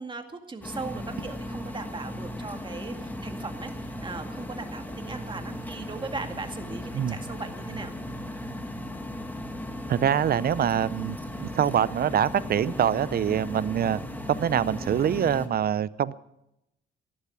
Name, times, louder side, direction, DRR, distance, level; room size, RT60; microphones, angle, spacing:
voice 1, 0.0-7.9, right 3 dB, 25° right, 6 dB, 2.0 m, -38 dB
sound 1, 0.6-15.5, left 1 dB, 10° left, 2.0 m, -37 dB
voice 2, 9.9-11.2 11.4-14.0 14.3-16.2, right 9 dB, 50° right, 19 dB, 0.6 m, -24 dB
14.0 x 12.0 x 8.5 m, 0.86 s
cardioid pair, 90°, 20 cm